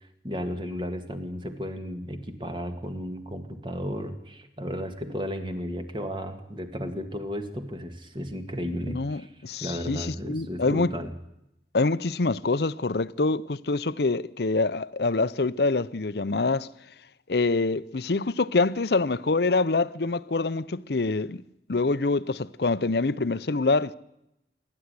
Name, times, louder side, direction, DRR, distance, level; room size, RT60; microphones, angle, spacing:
voice 1, 0.0-9.3 9.6-11.1, equal, 25° right, 2.1 m, -34 dB
voice 2, 8.9-10.9 11.7-16.7 17.3-21.4 21.7-24.0, left 3 dB, 65° left, 0.7 m, -25 dB
27.0 x 12.0 x 9.7 m
head